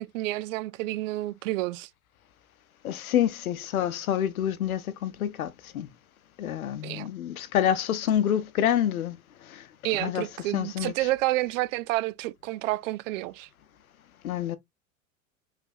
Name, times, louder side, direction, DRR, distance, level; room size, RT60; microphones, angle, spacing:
voice 1, 0.0-1.9 6.8-7.1 9.8-13.5, right 17 dB, 65° right, 0.5 m, -29 dB
voice 2, 2.8-5.9 6.4-9.2 9.5-9.6 10.0-10.2 10.5-10.9 14.2-14.6, left 10 dB, 90° left, 0.7 m, -27 dB
4.6 x 3.4 x 2.6 m
hypercardioid pair, 100°, 41 cm